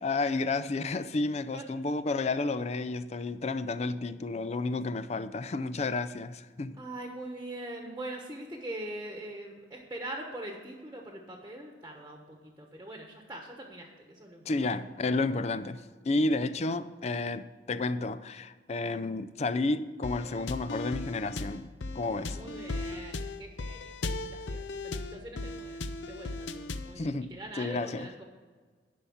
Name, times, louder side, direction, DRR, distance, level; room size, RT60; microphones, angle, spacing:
voice 1, 0.0-6.8 14.5-22.4 27.0-28.1, left 3 dB, 35° left, 0.4 m, -31 dB
voice 2, 6.8-14.7 22.2-28.2, right 1 dB, 15° right, 1.2 m, -43 dB
sound 1, 20.0-27.0, left 2 dB, 75° left, 0.6 m, -37 dB
11.0 x 5.6 x 7.1 m
head